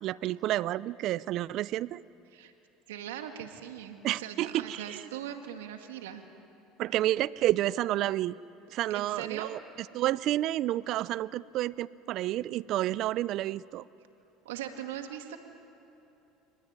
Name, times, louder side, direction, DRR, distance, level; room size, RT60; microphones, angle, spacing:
voice 1, 0.0-2.0 4.0-5.0 6.8-8.4 8.7-9.6 9.9-13.8, right 14 dB, 60° right, 20 dB, 0.5 m, -30 dB
voice 2, 2.9-6.2 8.9-9.5 14.4-15.4, right 10 dB, 85° right, 6 dB, 2.1 m, -40 dB
29.0 x 19.5 x 9.6 m, 2.9 s
supercardioid pair, 90°, 0 cm